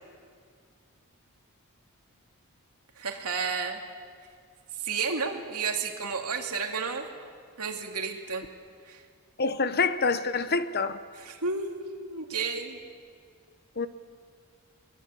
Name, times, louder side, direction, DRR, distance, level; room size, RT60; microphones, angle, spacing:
voice 1, 3.0-3.8 4.8-7.1 7.6-8.4 8.9-9.0 11.1-12.8, right 5 dB, 90° right, 2.6 m, -32 dB
voice 2, 9.4-11.0 13.8-13.9, left 4 dB, 45° left, 0.9 m, -26 dB
23.0 x 22.0 x 8.4 m
head